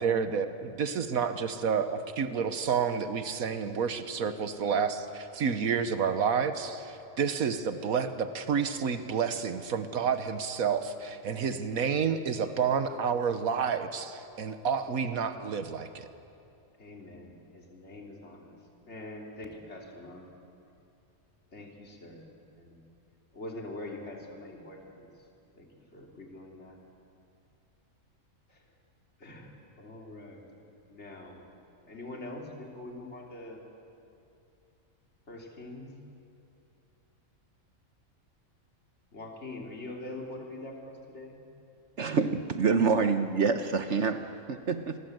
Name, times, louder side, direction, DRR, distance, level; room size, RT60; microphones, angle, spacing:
voice 1, 0.0-16.1, right 6 dB, 80° right, 9 dB, 1.6 m, -29 dB
voice 2, 16.8-18.5 18.9-20.3 21.5-22.3 22.6-22.8 23.3-25.1 25.6-26.8 28.5-28.6 29.2-30.5 30.9-31.4 31.9-33.6 35.3-35.9 39.1-41.4, left 2 dB, 50° left, 0 dB, 3.6 m, -44 dB
voice 3, 42.0-45.0, right 5 dB, 60° right, 8 dB, 1.2 m, -27 dB
28.0 x 22.0 x 7.9 m, 2.7 s
omnidirectional pair, 1.4 m